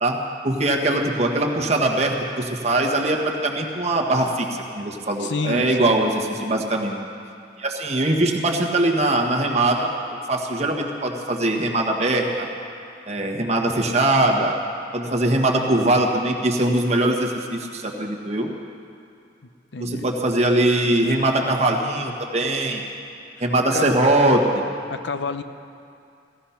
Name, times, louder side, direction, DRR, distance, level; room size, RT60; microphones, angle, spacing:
voice 1, 0.0-4.5 4.7-6.9 7.6-12.5 13.1-14.5 14.9-18.5 19.8-22.8 23.4-24.6, right 1 dB, 35° right, 1 dB, 1.4 m, -21 dB
voice 2, 5.2-6.0 19.4-20.1 23.4-23.9 24.9-25.4, left 3 dB, 85° left, 10 dB, 0.7 m, -29 dB
16.0 x 15.5 x 5.8 m, 2.5 s
head